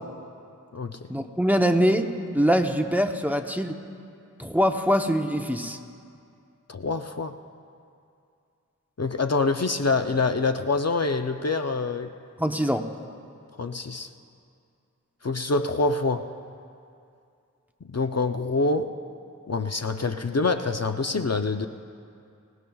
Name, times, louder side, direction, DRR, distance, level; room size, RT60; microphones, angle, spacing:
voice 1, 1.1-3.8 4.4-5.8 12.4-12.9, equal, 5° right, 4 dB, 0.8 m, -23 dB
voice 2, 6.7-7.4 9.0-12.1 13.6-14.1 15.2-16.3 17.8-18.9 19.5-21.7, left 3 dB, 50° left, 7 dB, 0.6 m, -25 dB
25.0 x 18.0 x 2.3 m, 2.5 s
wide cardioid pair, 40°, 32 cm